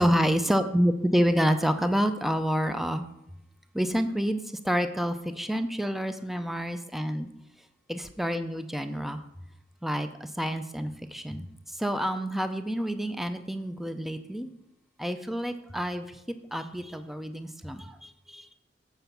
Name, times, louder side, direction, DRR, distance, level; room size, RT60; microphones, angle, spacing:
voice 1, 0.0-3.0 3.7-4.4 4.6-7.3 7.9-9.2 9.8-11.5 11.8-14.5 15.0-16.1 16.5-18.5, equal, ahead, 9 dB, 0.4 m, -28 dB
7.9 x 4.6 x 6.8 m, 0.83 s
head